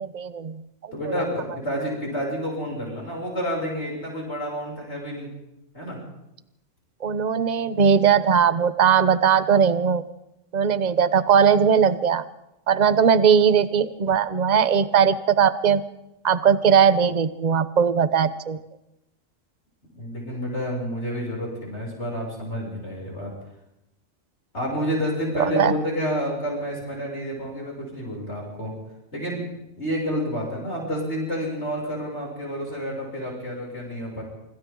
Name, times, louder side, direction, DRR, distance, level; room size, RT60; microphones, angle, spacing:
voice 1, 0.0-1.1 7.0-10.0 10.5-12.2 12.7-15.8 16.2-18.6 25.3-25.7, right 7 dB, 35° right, 13 dB, 1.0 m, -19 dB
voice 2, 0.9-5.3 5.7-6.0 19.9-23.3 24.5-28.7 29.1-34.2, equal, 60° left, -3 dB, 7.6 m, -29 dB
27.5 x 26.0 x 3.9 m, 0.89 s
omnidirectional pair, 1.3 m